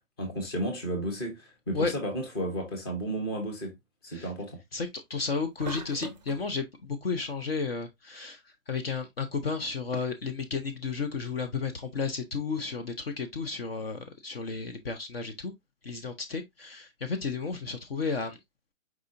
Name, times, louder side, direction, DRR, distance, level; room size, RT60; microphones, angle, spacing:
voice 1, 0.2-3.8 4.0-4.6, right 1 dB, 20° left, 0.9 m, -33 dB
voice 2, 4.7-15.5 15.8-18.4, left 4 dB, 45° left, 0.8 m, -33 dB
sound 1, 5.6-6.5, right 4 dB, 35° right, 0.4 m, -40 dB
4.8 x 3.9 x 2.5 m
hypercardioid pair, 170°, 40 cm